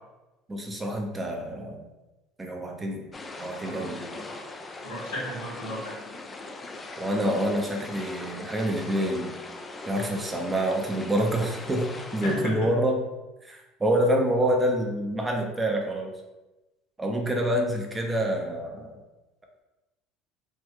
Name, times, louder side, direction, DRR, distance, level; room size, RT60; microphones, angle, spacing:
voice 1, 0.5-1.8 2.4-3.1 3.4-4.0 7.0-9.4 9.9-13.0 13.4-16.1 17.0-19.0, equal, 20° right, 2 dB, 0.7 m, -27 dB
sound 1, 3.1-12.4, left 2 dB, 25° left, 0.4 m, -40 dB
voice 2, 3.6-4.4 4.8-6.0 12.2-12.6, left 1 dB, 90° left, -5 dB, 1.3 m, -35 dB
3.2 x 2.6 x 3.5 m, 1.0 s
hypercardioid pair, 85°, 0 cm